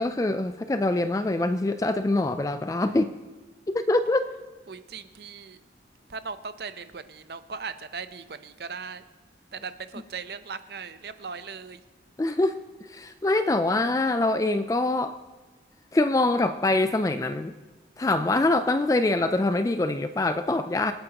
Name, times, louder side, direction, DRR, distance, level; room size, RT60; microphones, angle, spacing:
voice 1, 0.0-3.1 3.7-4.3 12.2-12.6 12.9-15.2 15.9-17.5 18.0-20.9, left 2 dB, 20° left, 10 dB, 0.3 m, -24 dB
voice 2, 4.7-5.6 6.1-9.0 9.5-11.8, right 5 dB, 60° right, 11 dB, 0.6 m, -38 dB
26.0 x 8.7 x 2.9 m, 1.3 s
head